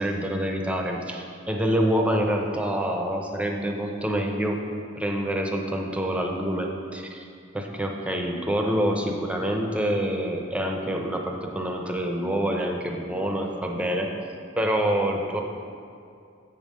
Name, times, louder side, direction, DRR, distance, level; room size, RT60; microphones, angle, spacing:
voice 1, 0.0-4.7 5.0-7.3 7.5-14.1 14.6-15.4, equal, 5° right, 2 dB, 0.6 m, -26 dB
7.8 x 5.5 x 5.0 m, 2.4 s
head